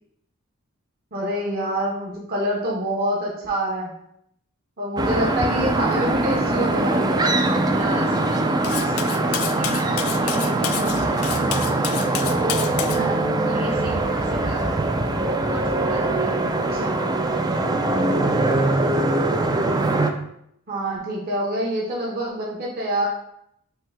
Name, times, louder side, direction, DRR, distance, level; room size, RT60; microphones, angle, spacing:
voice 1, 1.1-3.9 4.8-7.2 12.9-13.2 16.7-16.9 20.7-23.1, right 1 dB, 45° right, -4 dB, 0.9 m, -26 dB
sound 1, 5.0-20.1, right 2 dB, 20° right, 0.3 m, -22 dB
voice 2, 7.7-9.0 9.3-11.4 13.4-14.9 15.5-16.5, equal, 85° right, -2 dB, 1.3 m, -36 dB
Cutlery silverware, 8.6-13.0, left 11 dB, 75° left, 0.3 m, -30 dB
5.5 x 2.6 x 3.5 m, 0.74 s
head